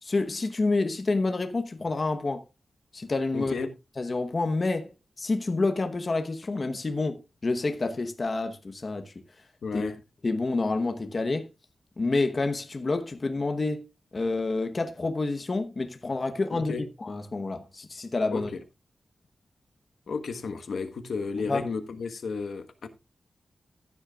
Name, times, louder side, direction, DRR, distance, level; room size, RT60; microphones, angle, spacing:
voice 1, 0.0-2.4 2.9-3.5 4.0-4.9 5.2-9.1 9.7-9.8 10.2-11.5 12.0-13.9 14.1-16.7 17.0-18.5 21.5-21.6, left 3 dB, 35° left, 1.0 m, -28 dB
voice 2, 3.3-3.7 9.6-9.9 16.5-16.8 18.3-18.6 20.1-22.9, left 4 dB, 75° left, 1.4 m, -33 dB
15.0 x 9.6 x 2.4 m
wide cardioid pair, 150°, 0 cm